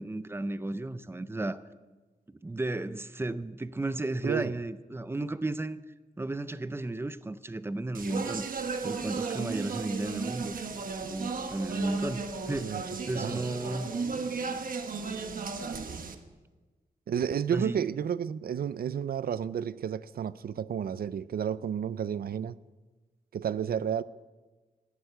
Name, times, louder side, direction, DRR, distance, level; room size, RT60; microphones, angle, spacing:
voice 1, 0.0-1.6 2.4-5.8 6.2-8.4 8.8-10.6 11.0-13.9 17.5-17.8, right 2 dB, 15° right, 0.5 m, -33 dB
Speech, 7.9-16.1, right 4 dB, 65° right, 1.1 m, -35 dB
voice 2, 12.6-13.4 17.1-22.6 23.3-24.0, right 8 dB, 90° right, 0.5 m, -31 dB
14.5 x 10.0 x 8.1 m
wide cardioid pair, 160°, 15 cm